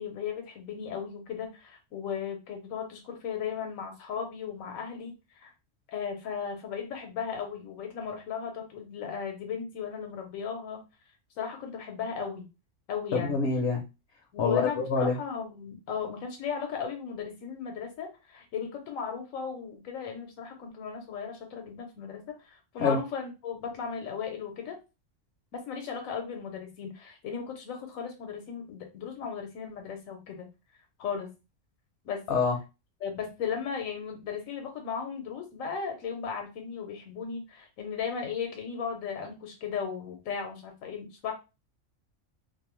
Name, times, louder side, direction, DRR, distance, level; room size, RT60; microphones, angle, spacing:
voice 1, 0.0-5.5 5.9-10.8 11.4-12.5 12.9-13.4 14.3-24.8 25.5-30.5 31.0-31.3 32.0-32.2 33.0-41.3, left 6 dB, 85° left, 4 dB, 1.1 m, -36 dB
voice 2, 13.1-13.8 14.4-15.2 22.8-23.0 32.3-32.6, left 4 dB, 65° left, 3 dB, 0.8 m, -26 dB
2.6 x 2.0 x 2.9 m, 0.27 s
omnidirectional pair, 1.4 m